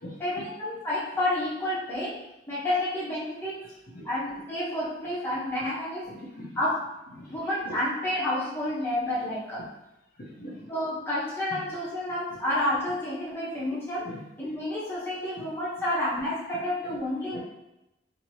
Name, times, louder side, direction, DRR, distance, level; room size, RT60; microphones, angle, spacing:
voice 1, 0.2-2.2 2.5-3.6 4.0-6.1 6.6-6.8 7.3-9.6 10.7-14.1 14.4-17.4, left 1 dB, 10° left, -9 dB, 0.9 m, -30 dB
voice 2, 6.1-6.5 7.1-7.4 7.6-7.8 9.6-9.7 10.2-10.7 11.7-11.8 12.3-12.4 14.0-14.2 15.4-15.5 17.3-17.4, left 1 dB, 45° left, -5 dB, 0.6 m, -41 dB
2.9 x 2.8 x 2.7 m, 0.89 s
head